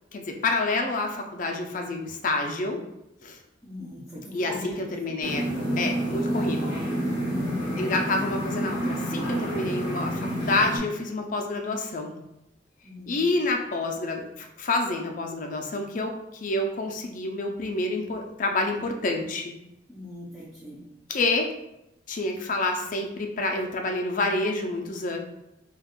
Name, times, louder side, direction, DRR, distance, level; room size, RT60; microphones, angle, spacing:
voice 1, 0.1-2.8 3.2-3.4 4.3-5.4 5.8-6.7 7.8-12.1 13.1-19.5 21.1-21.5 22.1-25.2, left 2 dB, 45° left, 3 dB, 0.4 m, -28 dB
voice 2, 3.6-4.9 6.2-7.8 9.4-9.6 12.8-13.2 19.9-20.8, left 1 dB, ahead, -9 dB, 0.6 m, -40 dB
sound 1, 5.2-10.8, equal, 25° right, 1.1 m, -28 dB
2.4 x 2.3 x 3.5 m, 0.87 s
head